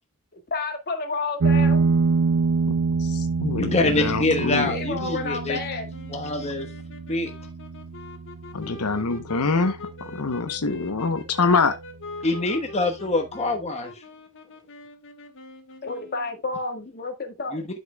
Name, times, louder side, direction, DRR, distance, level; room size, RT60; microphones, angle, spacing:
voice 1, 0.3-1.9 4.6-5.9 15.8-17.6, left 3 dB, 45° left, 1.8 m, -31 dB
sound 1, 1.4-10.4, right 4 dB, 75° right, 0.5 m, -26 dB
voice 2, 3.0-4.7 8.5-9.8 10.1-11.7, left 4 dB, 90° left, 0.9 m, -25 dB
voice 3, 3.5-5.6 6.1-6.7 7.1-7.3 12.2-13.9 17.5-17.7, left 2 dB, 30° left, 1.2 m, -25 dB
sound 2, 5.9-16.4, left 2 dB, 60° left, 1.4 m, -43 dB
12.0 x 5.3 x 2.3 m
head